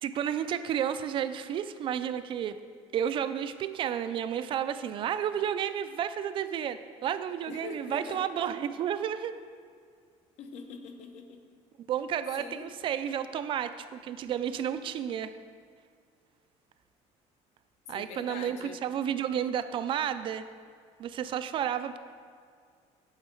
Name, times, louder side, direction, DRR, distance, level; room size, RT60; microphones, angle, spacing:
voice 1, 0.0-2.6 2.9-9.4 11.9-15.3 17.9-20.4 21.0-22.0, right 9 dB, 45° right, 11 dB, 0.3 m, -31 dB
voice 2, 7.4-8.2 10.4-11.4 12.4-12.7 17.9-18.8, left 5 dB, 60° left, 5 dB, 0.9 m, -43 dB
8.8 x 7.7 x 4.4 m, 2.1 s
cardioid pair, 160°, 12 cm